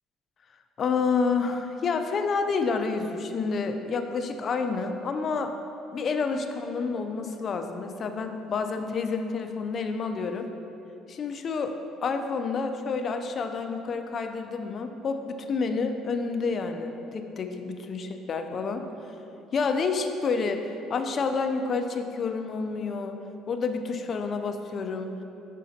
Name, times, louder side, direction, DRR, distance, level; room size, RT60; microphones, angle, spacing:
voice 1, 0.8-5.5 5.9-10.5 11.1-11.8 12.0-18.8 19.5-23.2 23.5-25.1, left 4 dB, 35° left, 6 dB, 0.3 m, -29 dB
6.3 x 5.7 x 2.7 m, 2.9 s
cardioid pair, 160°, 0 cm